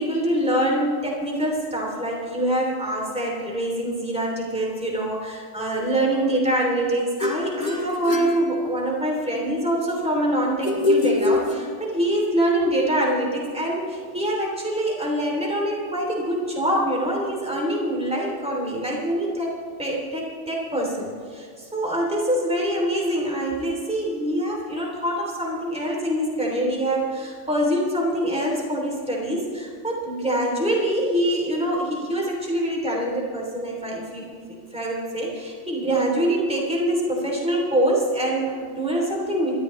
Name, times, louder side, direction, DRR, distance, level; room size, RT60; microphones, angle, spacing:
voice 1, 0.0-19.5 19.8-34.4 34.7-39.5, right 1 dB, 5° right, -2 dB, 2.9 m, -25 dB
sound 1, 7.2-9.1 10.6-12.2, left 2 dB, 40° left, 1.9 m, -25 dB
29.0 x 12.5 x 3.2 m, 2.1 s
omnidirectional pair, 1.3 m